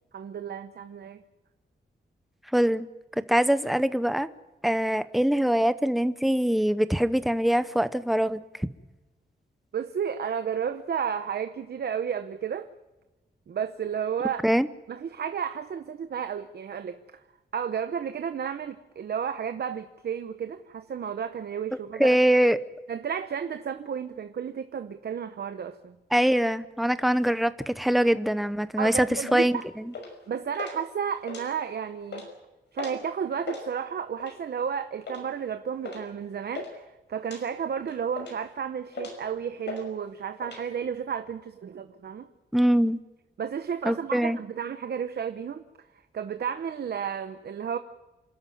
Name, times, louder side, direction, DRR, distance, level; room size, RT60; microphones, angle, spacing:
voice 1, 0.1-1.2 9.7-12.7 13.5-14.4 14.9-17.0 17.5-22.2 22.9-25.9 28.8-29.6 30.3-32.3 32.7-42.3 43.4-45.6 46.1-47.8, right 7 dB, 65° right, 0.9 m, -32 dB
voice 2, 2.5-2.9 3.3-4.3 4.6-8.7 14.4-14.7 22.0-22.6 26.1-29.9 42.5-43.0 43.8-44.4, equal, ahead, 0.8 m, -23 dB
sound 1, 29.3-29.5 29.9-30.2 30.5-30.8 31.2-31.7 32.0-32.3 32.8-33.0 33.3-33.6 34.2-34.5 35.1-35.3 35.8-36.0 36.3-36.7 37.2-37.4 37.9-38.5 38.9-39.3 39.7-39.9 40.1-40.6, left 4 dB, 75° left, 5.8 m, -38 dB
28.0 x 13.0 x 9.3 m
wide cardioid pair, 165°, 18 cm